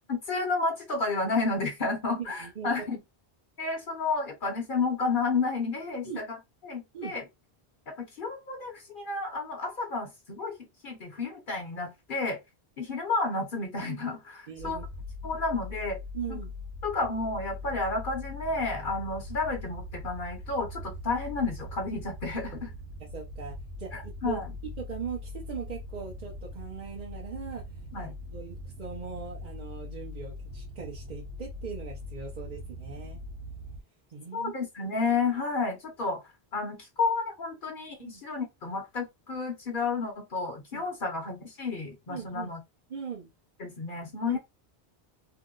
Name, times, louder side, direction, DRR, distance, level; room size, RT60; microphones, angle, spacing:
voice 1, 0.1-3.0 3.6-6.4 6.6-7.2 7.9-10.6 10.8-12.4 12.8-14.8 15.2-16.0 16.3-16.4 16.8-22.7 23.9-24.5 27.9-28.1 34.3-36.2 36.5-42.6 43.6-44.4, left 3 dB, 55° left, 0.9 m, -31 dB
voice 2, 2.1-2.7 6.0-6.2 6.9-7.1 14.5-14.8 15.2-15.3 16.1-16.5 23.1-24.4 24.8-27.6 27.9-33.2 34.1-34.5 38.0-38.2 40.7-40.9 42.1-42.5 42.9-43.3 44.3-44.4, right 7 dB, 50° right, 0.8 m, -39 dB
sound 1, 14.6-33.8, left 2 dB, 85° right, 0.9 m, -41 dB
2.8 x 2.0 x 3.7 m
omnidirectional pair, 1.1 m